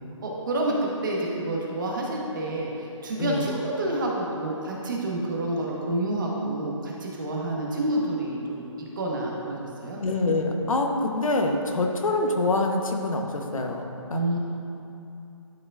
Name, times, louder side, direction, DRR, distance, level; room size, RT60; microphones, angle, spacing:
voice 1, 0.2-10.0 14.1-14.4, right 1 dB, 40° right, -3 dB, 1.2 m, -28 dB
voice 2, 10.0-13.8 14.1-14.4, left 2 dB, 85° left, 3 dB, 1.0 m, -25 dB
11.5 x 5.0 x 2.4 m, 2.7 s
hypercardioid pair, 165°, 17 cm